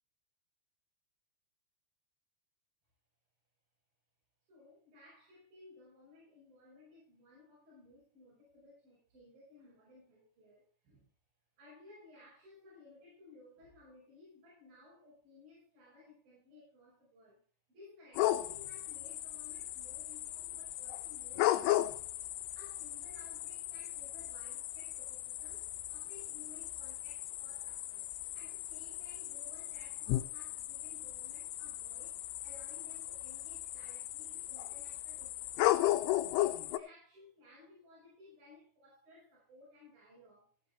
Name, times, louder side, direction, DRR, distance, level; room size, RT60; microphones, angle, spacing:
voice 1, 4.5-11.1 11.6-17.4 17.7-22.1 22.6-36.0 36.3-40.5, left 2 dB, 55° right, -6 dB, 7.7 m, -59 dB
sound 1, 18.1-36.8, left 15 dB, 80° left, 2.7 m, -36 dB
16.5 x 8.5 x 4.0 m, 0.39 s
omnidirectional pair, 5.1 m